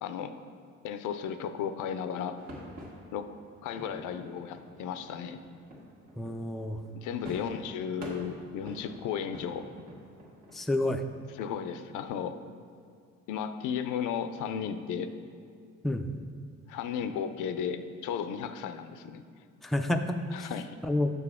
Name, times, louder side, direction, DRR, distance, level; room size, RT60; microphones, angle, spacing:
voice 1, 0.0-0.4 0.8-2.4 3.1-3.3 3.6-5.4 7.0-9.7 11.3-12.4 13.3-15.1 16.7-19.2 20.3-20.8, left 8 dB, 90° left, 10 dB, 0.5 m, -34 dB
sound 1, 2.4-11.0, equal, 65° right, 1.6 m, -48 dB
voice 2, 6.2-6.8 10.5-11.0 15.8-16.1 19.6-20.2 20.8-21.1, left 1 dB, ahead, 5 dB, 0.3 m, -29 dB
6.8 x 6.4 x 3.6 m, 2.4 s
cardioid pair, 90°, 30 cm